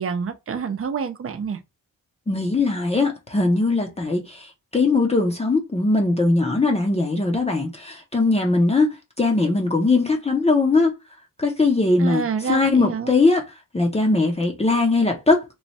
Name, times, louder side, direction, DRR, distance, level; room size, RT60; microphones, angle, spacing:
voice 1, 0.0-1.6 12.0-13.1, right 6 dB, 45° right, 0.6 m, -27 dB
voice 2, 2.3-10.9 11.4-13.4 13.7-15.4, left 3 dB, 20° left, 0.7 m, -20 dB
3.1 x 2.2 x 4.1 m
wide cardioid pair, 125°, 33 cm